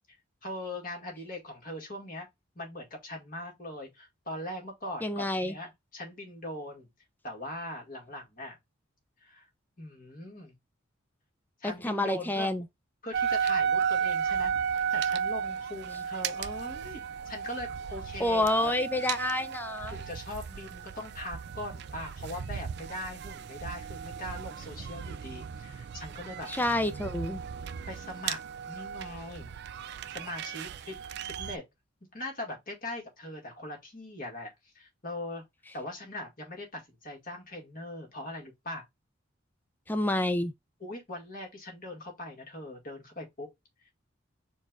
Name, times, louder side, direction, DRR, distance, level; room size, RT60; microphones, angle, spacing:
voice 1, 0.4-2.3 2.6-6.9 7.2-8.6 9.2-9.5 9.8-10.5 11.6-12.5 13.0-14.5 14.9-18.7 19.9-26.5 27.9-28.4 28.7-29.5 30.1-31.0 31.3-31.6 32.1-35.4 35.7-38.8 40.8-43.5, left 1 dB, 40° left, 1.9 m, -41 dB
voice 2, 5.0-5.6 11.6-12.7 18.2-20.0 26.5-27.4 39.9-40.5, left 1 dB, 10° left, 0.5 m, -28 dB
sound 1, 13.1-31.6, right 7 dB, 55° right, 0.4 m, -34 dB
4.5 x 2.5 x 4.5 m
head